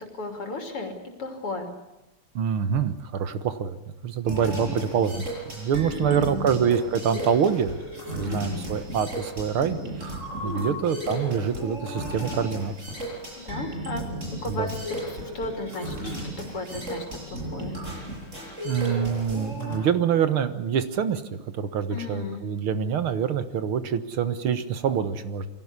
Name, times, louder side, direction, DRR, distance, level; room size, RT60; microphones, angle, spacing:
voice 1, 0.2-0.9 1.2-1.7 5.8-6.5 8.2-8.8 10.4-10.8 13.5-14.0 14.4-14.7 15.0-16.2 16.5-17.7 21.9-22.4, left 2 dB, 85° left, 4 dB, 3.9 m, -34 dB
voice 2, 2.4-3.8 4.0-5.2 5.5-7.7 8.1-10.2 10.4-12.8 14.5-14.7 18.6-25.5, right 7 dB, 75° right, 11 dB, 2.2 m, -26 dB
sound 1, 4.3-19.7, equal, 30° right, 7.5 m, -35 dB
24.0 x 17.0 x 9.9 m, 0.97 s
omnidirectional pair, 2.4 m